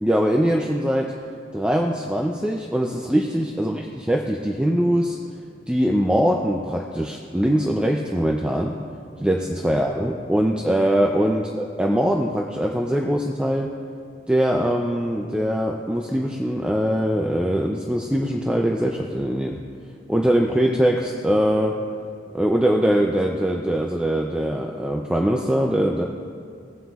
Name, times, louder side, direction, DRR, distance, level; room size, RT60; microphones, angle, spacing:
voice 1, 0.0-1.1 1.5-5.2 5.7-8.8 9.2-13.7 14.3-19.6 20.1-21.8 22.3-26.0, equal, 5° right, 1 dB, 0.3 m, -22 dB
17.5 x 7.5 x 2.4 m, 2.3 s
head